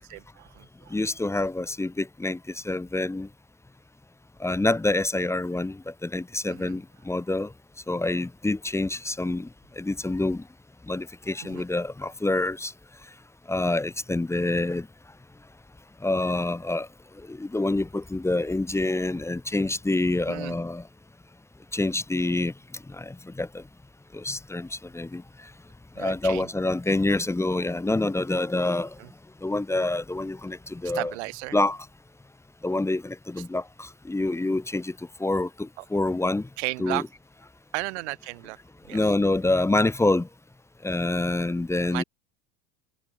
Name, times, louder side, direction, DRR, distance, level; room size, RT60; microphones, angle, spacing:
voice 1, 0.0-0.9 6.5-6.7 11.5-11.6 20.3-20.6 26.0-26.5 29.0-29.1 30.9-31.6 36.6-37.0 37.7-38.6 38.9-39.0 41.9-42.0, right 24 dB, 85° right, 1.2 m, -34 dB
voice 2, 0.9-2.4 2.6-3.3 4.4-7.5 7.9-9.5 9.8-10.4 10.9-12.7 13.5-14.9 16.0-16.9 17.3-20.8 21.7-22.5 23.0-23.6 24.1-24.7 24.9-25.2 26.0-28.9 29.4-31.1 31.5-31.8 32.6-34.9 35.2-36.5 36.8-37.1 38.9-40.3 40.8-42.0, left 2 dB, 10° left, 1.2 m, -26 dB
supercardioid pair, 115°, 33 cm